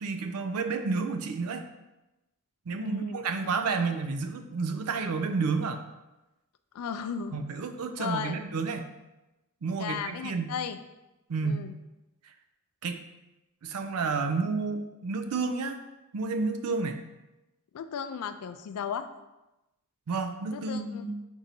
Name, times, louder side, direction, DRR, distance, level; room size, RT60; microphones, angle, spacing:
voice 1, 0.0-1.6 2.7-5.8 7.3-8.9 9.6-10.6 11.3-11.7 12.8-13.0 13.6-15.8 16.1-17.0 20.1-21.1, right 4 dB, 85° right, 7 dB, 0.5 m, -30 dB
voice 2, 2.8-3.2 3.7-3.8 6.7-7.4 8.0-8.4 9.7-10.8 11.4-11.7 17.7-19.1 20.5-21.1, left 7 dB, 80° left, 10 dB, 0.3 m, -35 dB
4.6 x 2.7 x 4.0 m, 1.0 s
head